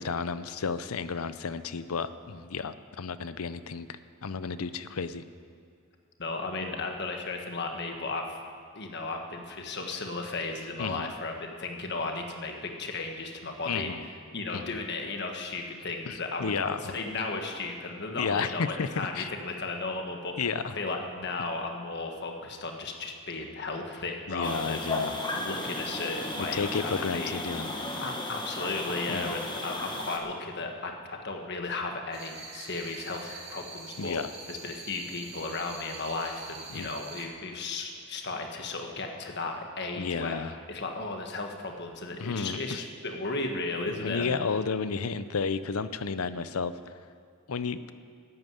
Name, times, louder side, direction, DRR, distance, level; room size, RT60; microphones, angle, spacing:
voice 1, 0.0-5.2 10.8-11.1 13.7-14.1 14.5-14.8 16.1-16.9 18.1-19.3 20.4-20.7 24.3-25.2 26.4-27.7 29.1-29.4 34.0-34.3 36.7-36.9 40.0-40.5 42.2-42.8 44.0-46.7 47.5-47.9, left 5 dB, 85° left, 13 dB, 0.6 m, -32 dB
voice 2, 6.2-8.4 8.7-13.9 14.3-20.4 20.7-24.9 25.3-27.4 28.0-34.2 34.5-44.4, left 3 dB, 50° left, 3 dB, 1.5 m, -35 dB
sound 1, 24.4-30.2, left 2 dB, 20° left, 1.3 m, -34 dB
sound 2, 32.1-37.2, right 3 dB, 50° right, 2.6 m, -44 dB
13.5 x 9.1 x 9.5 m, 2.3 s
head